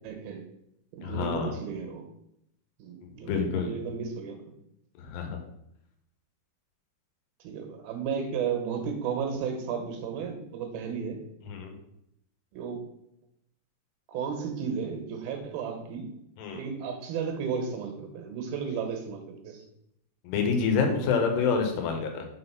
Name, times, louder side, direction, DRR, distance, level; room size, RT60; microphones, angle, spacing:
voice 1, 0.0-0.4 0.9-2.1 2.8-4.4 7.4-11.2 12.5-12.8 14.1-16.1 16.5-19.6, right 6 dB, 70° right, 5 dB, 2.8 m, -33 dB
voice 2, 1.0-1.5 3.0-3.7 5.0-5.4 11.5-11.7 16.4-16.6 20.2-22.3, left 5 dB, 90° left, 4 dB, 3.1 m, -27 dB
6.4 x 4.0 x 5.5 m, 0.78 s
omnidirectional pair, 4.7 m